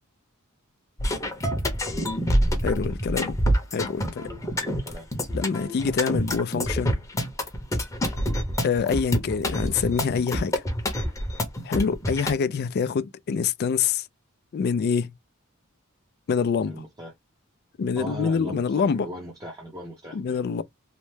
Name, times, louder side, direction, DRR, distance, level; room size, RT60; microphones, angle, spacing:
sound 1, 1.0-12.3, equal, 15° left, 0.7 m, -26 dB
voice 1, 1.8-2.1 4.5-5.1 16.6-17.1 18.0-20.4, equal, 20° right, 0.6 m, -38 dB
voice 2, 2.6-3.4 3.7-4.2 5.3-7.0 8.6-10.6 11.6-14.1 14.5-15.1 16.3-16.8 17.8-19.1 20.1-20.6, left 6 dB, 45° left, 0.3 m, -25 dB
3.2 x 2.0 x 3.1 m
head